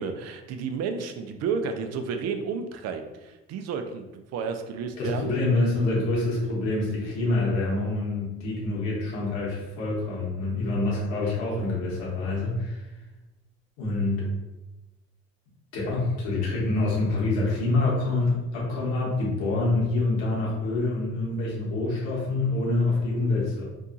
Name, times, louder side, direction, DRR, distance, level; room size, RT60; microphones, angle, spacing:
voice 1, 0.0-5.3, right 5 dB, 55° right, 6 dB, 0.4 m, -31 dB
voice 2, 5.0-12.8 13.8-14.2 15.7-23.6, left 2 dB, 80° left, -4 dB, 1.1 m, -26 dB
2.7 x 2.3 x 2.6 m, 1.0 s
supercardioid pair, 70°, 30 cm